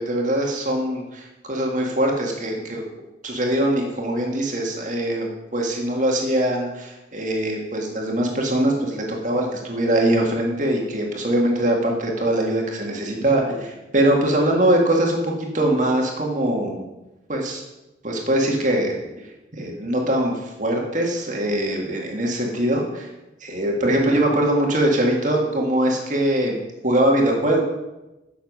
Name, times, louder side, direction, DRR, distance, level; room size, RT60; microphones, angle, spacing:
voice 1, 0.0-2.8 3.2-16.9 17.3-17.6 18.0-18.9 19.5-20.3 20.6-23.1 23.4-27.6, right 1 dB, 45° right, 0 dB, 2.0 m, -22 dB
9.7 x 7.1 x 5.5 m, 1.0 s
head